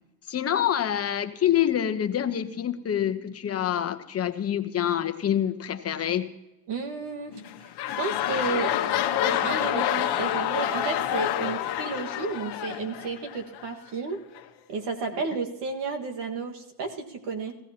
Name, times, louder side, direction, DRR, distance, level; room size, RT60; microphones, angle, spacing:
voice 1, 0.3-6.3, left 10 dB, 35° left, 8 dB, 1.0 m, -26 dB
voice 2, 6.7-7.7 8.0-14.2 14.7-17.6, right 4 dB, 70° right, 4 dB, 1.8 m, -32 dB
sound 1, 7.3-13.7 14.4-14.5, left 11 dB, 65° left, 1.2 m, -28 dB
16.5 x 15.5 x 2.9 m, 0.94 s
supercardioid pair, 95°, 43 cm